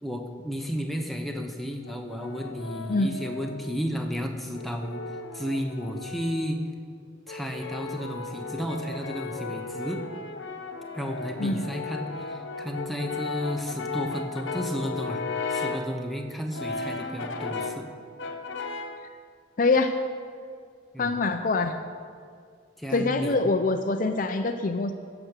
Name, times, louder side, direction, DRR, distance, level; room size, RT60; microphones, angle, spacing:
voice 1, 0.0-5.0 5.3-6.6 7.3-10.0 10.9-15.2 15.5-17.9 20.9-21.2 22.8-23.5, equal, ahead, 2 dB, 0.9 m, -33 dB
Brass instrument, 1.9-3.8 4.5-6.6 7.3-15.9 16.5-17.9 18.2-19.0, left 3 dB, 75° left, 1.0 m, -35 dB
voice 2, 19.6-19.9 21.0-21.7 22.9-24.9, left 3 dB, 45° left, 7 dB, 0.5 m, -24 dB
15.5 x 6.0 x 6.7 m, 2.1 s
head